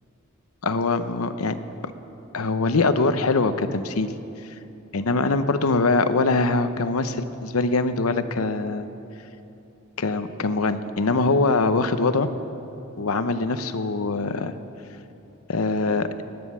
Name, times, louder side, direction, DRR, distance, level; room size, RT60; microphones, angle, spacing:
voice 1, 0.6-1.6 2.3-4.1 4.9-8.9 10.0-12.3 13.0-14.6 15.5-16.1, left 3 dB, 85° left, 11 dB, 0.8 m, -23 dB
19.0 x 9.5 x 7.3 m, 2.9 s
head